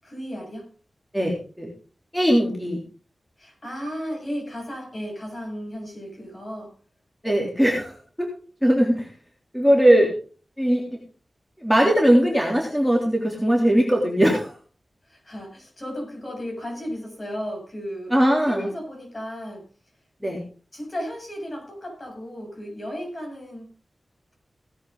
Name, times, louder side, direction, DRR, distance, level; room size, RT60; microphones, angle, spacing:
voice 1, 0.0-0.7 3.4-6.7 15.1-18.2 18.5-19.6 20.7-23.7, equal, 35° left, 2 dB, 7.7 m, -34 dB
voice 2, 1.1-1.7 2.1-2.8 7.2-8.3 8.6-9.1 9.5-10.1 10.6-10.9 11.6-14.5 18.1-18.7 20.2-20.4, equal, ahead, -1 dB, 3.4 m, -20 dB
17.5 x 9.8 x 3.8 m, 0.38 s
wide cardioid pair, 90°, 0 cm